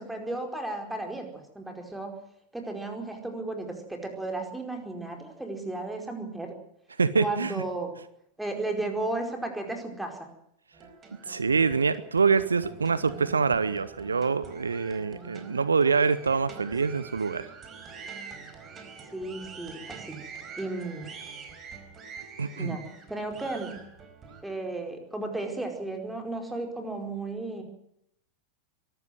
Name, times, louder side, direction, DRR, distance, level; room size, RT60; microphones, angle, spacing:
voice 1, 0.0-2.2 2.5-6.6 7.2-7.9 8.4-10.3 19.1-20.2 20.6-21.1 22.6-22.8 23.1-23.7 24.4-27.6, right 2 dB, 5° right, 4 dB, 4.8 m, -34 dB
voice 2, 7.0-7.5 11.3-17.4 22.4-22.8, right 5 dB, 75° right, 16 dB, 0.9 m, -25 dB
sound 1, 10.7-24.4, right 5 dB, 25° right, 4.4 m, -45 dB
24.0 x 13.0 x 9.3 m, 0.74 s
figure-of-eight pair, 90°, 0 cm